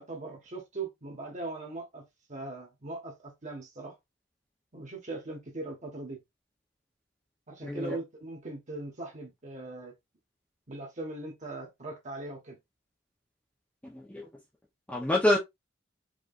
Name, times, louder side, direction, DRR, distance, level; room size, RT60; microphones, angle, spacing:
voice 1, 0.0-2.0 2.3-3.9 4.7-6.2 7.5-9.9 10.7-12.6, right 2 dB, 40° right, 1.5 m, -40 dB
voice 2, 7.6-8.0 13.8-14.2 14.9-15.4, left 1 dB, 10° left, 0.8 m, -27 dB
5.0 x 3.3 x 2.5 m
head